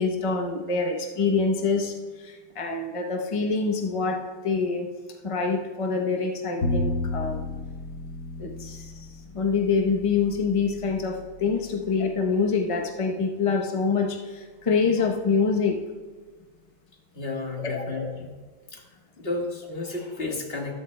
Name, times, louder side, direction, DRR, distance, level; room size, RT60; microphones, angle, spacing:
voice 1, 0.0-4.9 5.2-7.5 8.4-9.1 9.3-15.8 17.6-17.8, left 4 dB, 55° left, 2 dB, 0.3 m, -26 dB
Bowed string instrument, 6.6-12.8, left 2 dB, 85° left, 2.0 m, -33 dB
voice 2, 17.1-18.3 18.7-18.8 19.2-20.7, left 3 dB, 35° left, -1 dB, 1.6 m, -32 dB
13.5 x 12.5 x 2.2 m, 1.4 s
omnidirectional pair, 2.0 m